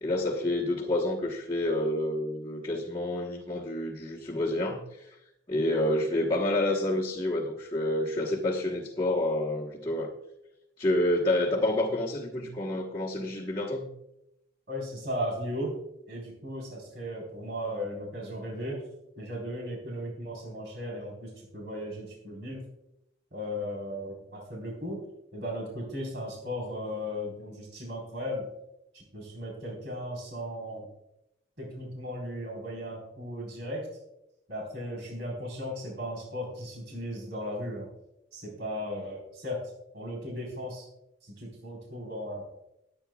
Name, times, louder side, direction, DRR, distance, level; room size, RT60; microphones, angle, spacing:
voice 1, 0.0-5.1 5.5-10.1 10.8-13.9, left 1 dB, 25° left, -5 dB, 1.2 m, -28 dB
voice 2, 14.7-15.7 16.1-18.8 19.2-22.6 23.3-25.0 25.3-28.5 28.9-30.9 31.6-33.9 34.5-37.9 38.3-39.6 39.9-40.9 41.2-42.4, equal, 55° right, -2 dB, 4.1 m, -36 dB
21.0 x 9.0 x 2.3 m, 0.82 s
head